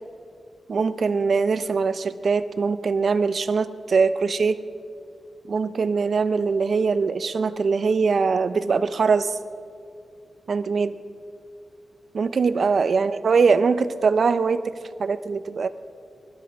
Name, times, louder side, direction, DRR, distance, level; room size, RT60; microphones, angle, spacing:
voice 1, 0.7-4.6 5.5-9.4 10.5-10.9 12.1-14.6 15.0-15.7, right 5 dB, 60° right, 13 dB, 0.6 m, -22 dB
21.0 x 11.5 x 5.5 m, 2.3 s
wide cardioid pair, 115°, 0 cm